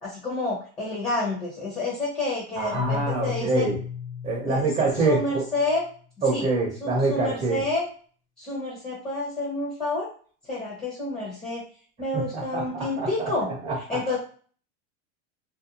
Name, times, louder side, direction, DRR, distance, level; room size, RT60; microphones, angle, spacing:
voice 1, 0.0-3.7 4.4-4.7 5.0-5.8 6.3-6.5 6.8-7.9 8.4-10.1 10.5-11.6 12.0-13.5 13.9-14.2, left 2 dB, 15° left, -5 dB, 0.8 m, -29 dB
voice 2, 2.6-3.8 4.2-5.4 6.2-7.6 12.1-14.2, right 3 dB, 20° right, -3 dB, 0.7 m, -26 dB
Keyboard (musical), 2.7-5.7, left 8 dB, 40° left, 1.1 m, -33 dB
2.5 x 2.1 x 2.8 m, 0.42 s
supercardioid pair, 150°, 35 cm